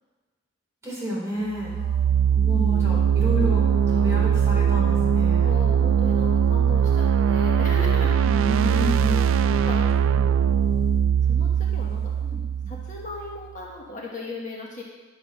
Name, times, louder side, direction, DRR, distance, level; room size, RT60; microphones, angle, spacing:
voice 1, 0.8-1.7 2.3-5.6 8.2-9.3 12.2-12.7, equal, 15° right, -7 dB, 4.1 m, -31 dB
sound 1, 1.6-13.3, right 8 dB, 80° right, 0.3 m, -21 dB
voice 2, 1.7-2.3 5.4-8.1 8.7-8.8 9.4-10.7 11.2-12.1 12.7-14.8, left 2 dB, 40° left, -3 dB, 1.4 m, -37 dB
11.0 x 7.1 x 6.0 m, 1.3 s
head